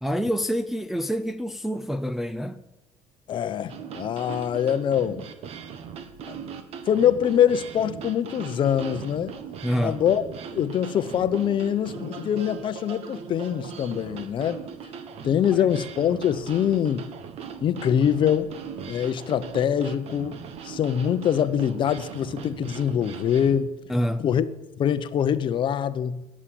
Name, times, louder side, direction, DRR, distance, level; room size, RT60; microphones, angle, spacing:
voice 1, 0.0-2.6 9.6-10.0 15.6-15.7 23.9-24.2, equal, ahead, 0.4 m, -27 dB
voice 2, 3.3-5.2 6.3-6.4 6.9-9.3 9.8-10.2 10.5-14.6 15.2-17.1 17.6-18.5 18.9-20.4 20.6-23.7 24.2-24.5 24.8-26.2, left 9 dB, 40° left, 0.7 m, -24 dB
sound 1, 3.7-23.6, right 7 dB, 55° right, 1.4 m, -39 dB
17.5 x 7.5 x 10.0 m
cardioid pair, 160°, 12 cm